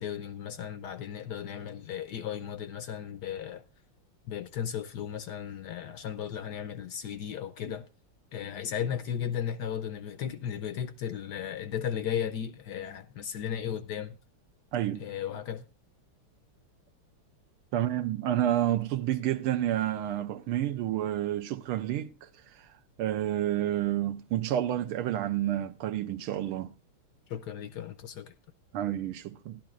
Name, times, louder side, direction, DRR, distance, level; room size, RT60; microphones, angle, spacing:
voice 1, 0.0-3.6 4.3-7.9 8.3-14.2 15.0-15.6 27.3-28.3, left 9 dB, 70° left, 1.0 m, -35 dB
voice 2, 14.7-15.1 17.7-22.3 23.0-26.7 28.7-29.6, right 12 dB, 80° right, 1.6 m, -29 dB
14.0 x 12.0 x 2.4 m
omnidirectional pair, 2.4 m